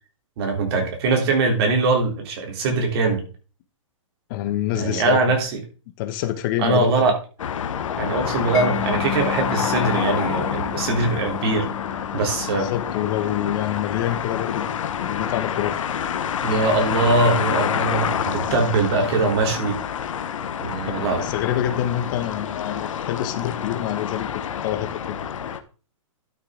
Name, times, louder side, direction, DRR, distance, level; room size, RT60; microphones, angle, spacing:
voice 1, 0.4-3.2 4.7-5.6 6.6-7.1 8.0-11.7 12.1-12.7 16.4-19.8 20.6-21.2, right 3 dB, 50° right, 2 dB, 3.4 m, -22 dB
voice 2, 4.3-5.3 6.0-7.1 12.5-14.7 15.0-15.8 20.8-24.3 24.6-25.2, left 12 dB, 40° left, 9 dB, 1.1 m, -26 dB
sound 1, 7.4-25.6, left 8 dB, 70° left, 1.2 m, -28 dB
Mallet percussion, 8.5-15.3, left 16 dB, 20° left, 0.7 m, -35 dB
12.0 x 6.5 x 3.7 m, 0.36 s
hypercardioid pair, 145°, 17 cm